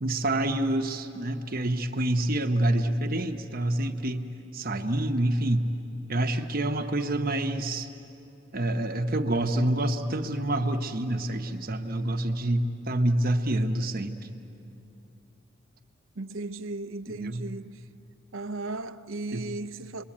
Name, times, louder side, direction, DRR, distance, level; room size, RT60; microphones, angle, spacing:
voice 1, 0.0-4.3 4.5-5.7 6.1-7.9 8.5-14.3 17.1-17.4 19.3-19.5, right 1 dB, 45° right, 1.0 m, -27 dB
voice 2, 16.2-17.8 18.3-20.0, right 2 dB, 75° right, 0.7 m, -36 dB
29.0 x 22.5 x 8.6 m
head